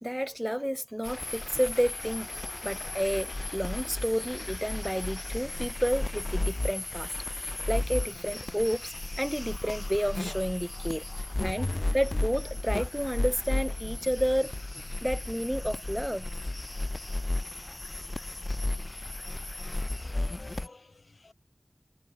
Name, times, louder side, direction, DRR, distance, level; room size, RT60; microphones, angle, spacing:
voice 1, 0.0-2.3 2.6-14.5 15.0-16.3, equal, 5° right, 4.1 m, -31 dB
sound 1, 1.0-20.7, left 2 dB, 40° left, 1.6 m, -34 dB
voice 2, 11.1-11.8 20.0-21.3, left 3 dB, 75° left, 3.3 m, -53 dB
wide cardioid pair, 60°, 0 cm